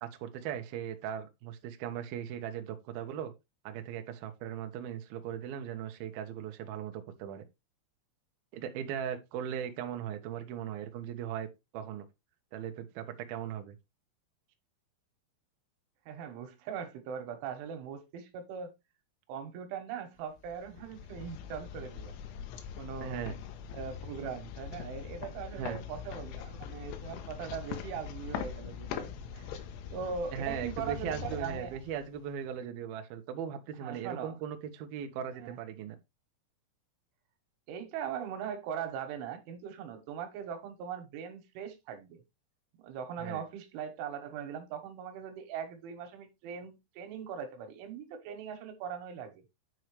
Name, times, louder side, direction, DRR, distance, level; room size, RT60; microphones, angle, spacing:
voice 1, 0.0-3.3 3.6-7.4 8.5-11.5 11.7-12.1 12.5-13.8 23.0-23.3 25.5-25.8 30.3-36.0 43.2-43.4, right 9 dB, 70° right, 2.5 m, -38 dB
voice 2, 16.1-18.7 19.3-22.2 22.8-23.2 23.7-29.6 29.9-31.8 33.8-34.3 35.3-35.6 37.7-42.2 42.8-49.4, right 7 dB, 85° right, 3.8 m, -40 dB
sound 1, 20.4-32.4, left 8 dB, 80° left, 3.2 m, -42 dB
9.5 x 5.5 x 3.2 m
omnidirectional pair, 5.4 m